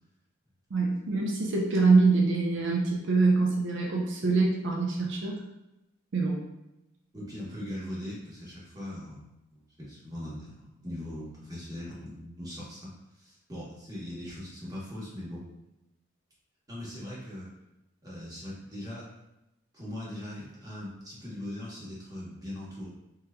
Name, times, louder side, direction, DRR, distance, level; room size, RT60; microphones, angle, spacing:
voice 1, 0.7-5.3 6.1-6.4, right 3 dB, 60° right, -1 dB, 0.5 m, -24 dB
voice 2, 7.1-15.4 16.7-17.5 18.0-19.1 19.7-22.9, left 1 dB, 20° right, -7 dB, 1.0 m, -40 dB
3.6 x 2.9 x 2.2 m, 0.93 s
head